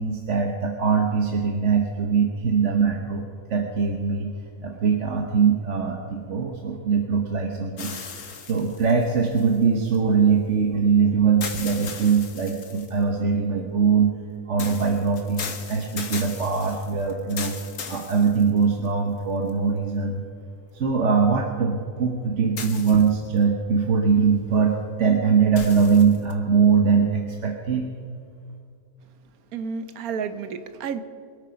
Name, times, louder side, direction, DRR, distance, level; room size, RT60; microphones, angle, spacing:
voice 1, 0.0-3.2 3.5-4.3 4.6-7.9 8.4-14.1 14.5-17.5 17.9-20.2 20.7-27.9, right 5 dB, 55° right, 2 dB, 1.4 m, -22 dB
sound 1, 7.8-10.0 11.4-13.0 14.6-18.9 19.5-19.6 22.6-23.4 25.6-26.3, left 6 dB, 85° left, 1.7 m, -37 dB
voice 2, 29.5-31.0, right 6 dB, 85° right, 10 dB, 1.4 m, -31 dB
23.5 x 8.7 x 5.2 m, 2.3 s
omnidirectional pair, 1.5 m